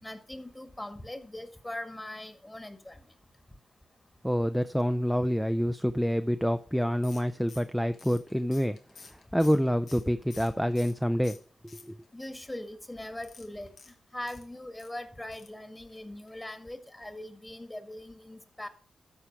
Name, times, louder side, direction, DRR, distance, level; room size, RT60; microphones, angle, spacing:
voice 1, 0.0-3.0 12.1-13.7 14.1-18.7, left 1 dB, 15° left, 8 dB, 1.9 m, -41 dB
voice 2, 4.2-8.8 9.3-11.4 11.9-12.0, equal, ahead, 10 dB, 0.5 m, -27 dB
sound 1, 7.0-11.0 11.2-12.2 13.2-14.9 15.3-15.6 15.9-16.0 16.3-16.4, left 4 dB, 75° left, 1.5 m, -52 dB
12.5 x 4.9 x 5.9 m, 0.40 s
cardioid pair, 65°, 0 cm